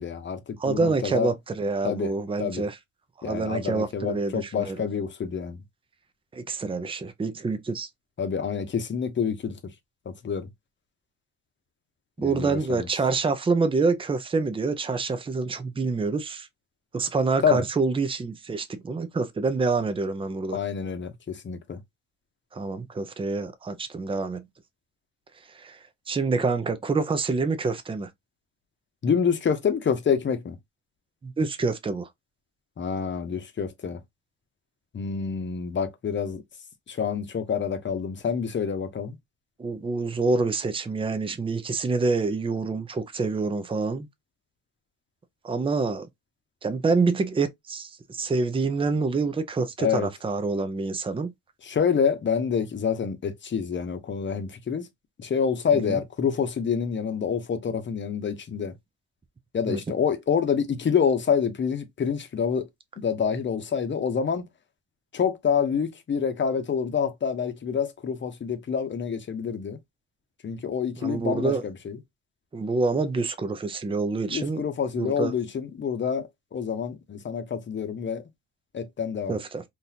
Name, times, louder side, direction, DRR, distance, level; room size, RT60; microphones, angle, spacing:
voice 1, 0.0-0.4 0.6-1.3 1.8-2.1 2.4-2.6 3.2-5.6 8.2-9.6 10.1-10.5 12.2-12.9 17.4-17.6 20.5-21.8 29.0-30.6 32.8-34.0 34.9-36.4 36.9-39.2 49.8-50.1 51.6-54.9 55.2-58.7 59.5-62.6 63.0-64.5 65.1-69.8 70.4-72.0 74.3-78.2 78.7-79.4, left 7 dB, 40° left, 0.9 m, -27 dB
voice 2, 0.6-2.8 3.2-4.8 6.3-7.9 12.2-16.5 16.9-20.6 22.5-24.5 25.5-25.8 26.1-28.1 31.2-32.1 39.6-44.1 45.4-46.1 46.6-51.3 55.7-56.0 59.7-59.8 71.0-71.6 72.5-74.6 75.0-75.3 79.3-79.6, right 4 dB, 15° right, 0.6 m, -27 dB
3.9 x 2.6 x 2.8 m
cardioid pair, 90°, 30 cm